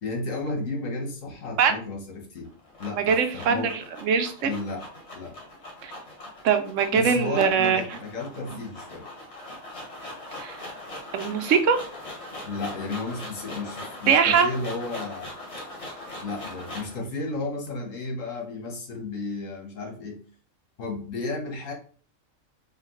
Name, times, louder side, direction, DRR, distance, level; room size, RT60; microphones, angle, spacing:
voice 1, 0.0-2.5 2.8-3.7 4.4-4.8 5.1-5.4 6.9-9.1 12.4-15.3 16.2-20.2 20.8-21.7, left 3 dB, 70° left, 1 dB, 1.5 m, -33 dB
sound 1, 2.4-17.0, left 1 dB, 55° left, 1.8 m, -41 dB
voice 2, 3.0-4.5 5.8-5.9 6.4-7.8 10.4-10.6 11.1-11.8 14.1-14.5, right 6 dB, 70° right, 8 dB, 0.9 m, -22 dB
5.0 x 2.7 x 3.1 m, 0.42 s
omnidirectional pair, 1.4 m